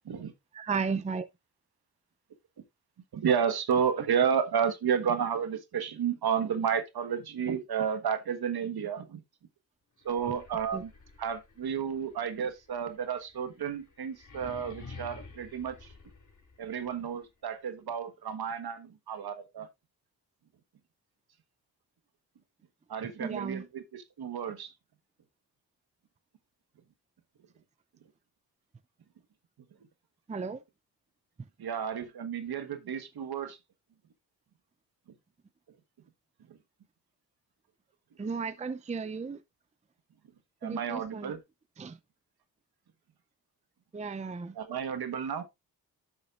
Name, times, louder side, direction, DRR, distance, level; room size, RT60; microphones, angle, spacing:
voice 1, 0.5-1.2 10.7-10.8 23.2-23.6 30.3-30.6 38.2-39.4 40.6-41.3 41.8-42.0 43.9-44.6, right 5 dB, 15° right, 0.5 m, -34 dB
voice 2, 3.1-9.2 10.0-10.9 11.2-15.9 16.6-19.7 22.9-24.7 30.4-30.5 31.6-33.6 36.5-36.6 40.6-41.4 44.5-45.4, right 7 dB, 60° right, 1.4 m, -31 dB
sound 1, 10.0-16.9, left 4 dB, 45° left, 2.9 m, -51 dB
11.0 x 6.2 x 2.5 m
cardioid pair, 65°, 41 cm